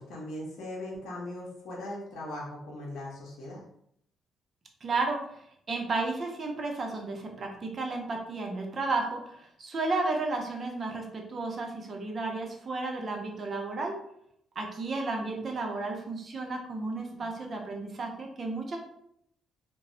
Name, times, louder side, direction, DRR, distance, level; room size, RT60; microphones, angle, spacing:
voice 1, 0.0-3.6 17.1-17.3, left 1 dB, 75° left, -4 dB, 0.8 m, -39 dB
voice 2, 4.8-14.0 14.6-18.8, right 3 dB, 45° right, 2 dB, 0.6 m, -33 dB
2.2 x 2.0 x 3.7 m, 0.72 s
cardioid pair, 90°, 0 cm